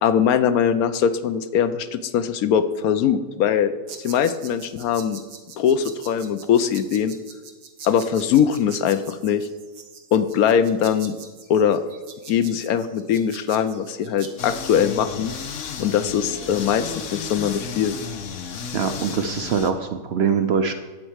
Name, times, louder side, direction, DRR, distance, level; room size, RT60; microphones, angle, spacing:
voice 1, 0.0-3.7 4.0-5.2 5.6-7.2 7.8-9.5 10.1-11.2 11.5-11.8 12.3-15.3 15.8-18.0, left 8 dB, 85° left, 11 dB, 1.1 m, -21 dB
sound 1, 3.9-14.3, right 6 dB, 80° right, 1.5 m, -43 dB
sound 2, 14.4-19.7, left 6 dB, 65° left, 1.1 m, -33 dB
voice 2, 18.7-20.7, right 6 dB, 60° right, 8 dB, 0.7 m, -23 dB
11.0 x 4.5 x 8.0 m, 1.4 s
omnidirectional pair, 1.5 m